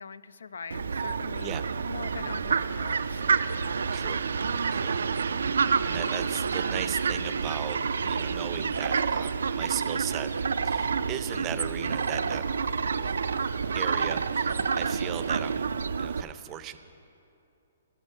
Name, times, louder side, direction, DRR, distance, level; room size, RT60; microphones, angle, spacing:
voice 1, 0.0-1.6 1.9-3.2, left 6 dB, 90° left, 17 dB, 0.3 m, -42 dB
Fowl, 0.7-16.2, right 5 dB, 85° right, 0.3 m, -28 dB
voice 2, 5.8-10.3 10.6-12.4 13.7-15.7 16.0-16.8, right 11 dB, 25° right, 11 dB, 0.5 m, -37 dB
15.0 x 6.2 x 5.5 m, 2.7 s
hypercardioid pair, 150°, 0 cm